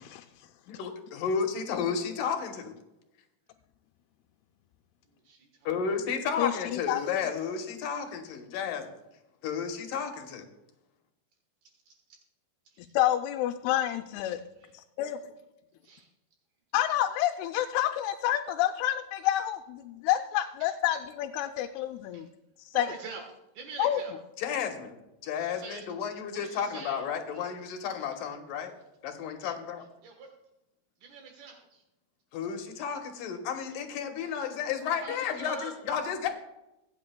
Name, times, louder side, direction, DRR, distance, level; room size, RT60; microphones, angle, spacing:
voice 1, 0.8-2.7 5.7-8.9 9.4-10.5 24.4-25.0 25.2-28.7 29.0-29.9 32.3-36.3, left 6 dB, 70° left, 4 dB, 2.5 m, -32 dB
voice 2, 5.1-5.7 11.6-11.9 12.6-13.0 14.6-14.8 15.8-16.1 20.6-21.0 22.1-22.2 22.7-24.1 25.3-25.9 26.3-27.4 27.9-28.0 30.0-30.3 31.0-31.8 33.2-33.3 34.2-34.3 34.8-35.7, right 4 dB, 75° right, 1 dB, 3.1 m, -45 dB
voice 3, 6.4-7.4 12.9-14.4 14.7-15.2 16.7-22.3 22.8-22.9 23.8-24.0, left 12 dB, 85° left, 5 dB, 2.5 m, -28 dB
24.5 x 8.3 x 2.2 m, 0.94 s
omnidirectional pair, 4.5 m